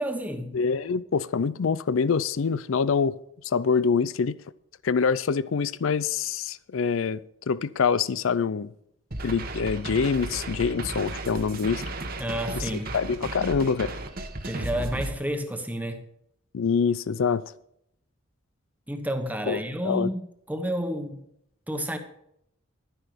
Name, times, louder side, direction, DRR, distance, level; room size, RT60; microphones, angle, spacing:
voice 1, 0.0-0.6 12.2-13.0 14.4-16.1 18.9-21.2 21.7-22.0, equal, 10° right, 1.2 m, -30 dB
voice 2, 0.5-3.2 3.4-4.4 4.8-7.2 7.5-8.7 9.2-11.8 12.6-14.0 16.5-17.4 19.5-20.1, left 5 dB, 80° left, 0.5 m, -25 dB
sound 1, 9.1-15.1, right 2 dB, 45° right, 1.2 m, -34 dB
12.0 x 10.0 x 5.1 m
head